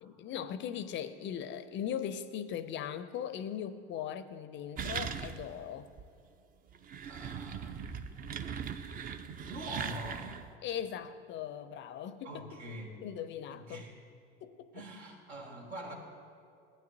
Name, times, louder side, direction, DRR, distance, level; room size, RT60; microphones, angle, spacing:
voice 1, 0.0-5.9 10.6-12.6 13.0-13.9 14.4-14.9, left 9 dB, 35° left, 13 dB, 0.5 m, -39 dB
sound 1, 4.8-5.6 6.0-6.1 6.7-10.5, right 7 dB, 30° right, 0.5 m, -39 dB
voice 2, 7.0-8.0 9.4-10.3 12.2-12.9 13.5-13.9 14.7-15.9, right 1 dB, 80° right, -1 dB, 2.0 m, -44 dB
15.5 x 9.0 x 2.7 m, 2.5 s
hypercardioid pair, 80°, 31 cm